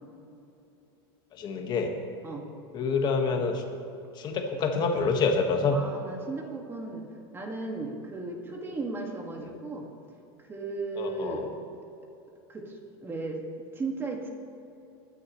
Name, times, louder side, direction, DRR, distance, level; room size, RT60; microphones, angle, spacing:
voice 1, 1.3-1.9 2.7-3.6 4.1-5.8 11.0-11.5, left 4 dB, 30° left, 3 dB, 1.6 m, -27 dB
voice 2, 5.7-7.1 7.3-9.9 10.4-11.5 12.5-13.4 13.7-14.3, right 3 dB, 15° right, 1 dB, 1.9 m, -36 dB
20.0 x 10.0 x 3.2 m, 2.8 s
supercardioid pair, 135°, 13 cm